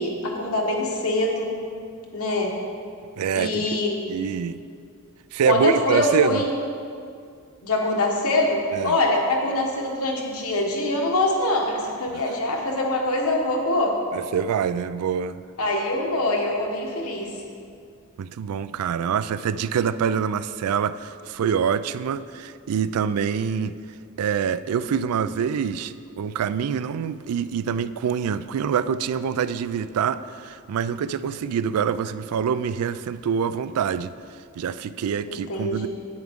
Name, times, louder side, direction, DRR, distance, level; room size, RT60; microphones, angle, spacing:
voice 1, 0.0-1.5 2.1-2.5 3.3-4.1 5.5-6.4 7.6-14.0 15.6-17.3 35.3-35.9, left 2 dB, 75° left, 0 dB, 1.3 m, -24 dB
voice 2, 3.2-4.6 5.3-6.4 8.7-9.0 12.1-12.2 14.1-15.4 18.2-23.7 24.2-34.1 34.6-35.9, right 7 dB, 90° right, 14 dB, 0.3 m, -25 dB
9.4 x 8.5 x 3.6 m, 2.3 s
head